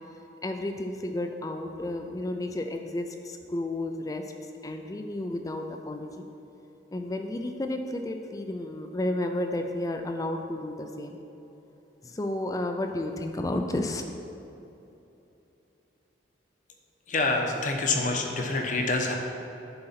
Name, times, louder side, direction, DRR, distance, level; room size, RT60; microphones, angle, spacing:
voice 1, 0.4-4.3 4.6-6.2 6.9-11.2 12.0-14.1, left 1 dB, 20° left, 5 dB, 0.4 m, -32 dB
voice 2, 17.1-19.1, left 3 dB, 40° left, 2 dB, 0.8 m, -26 dB
9.7 x 3.9 x 5.7 m, 2.9 s
head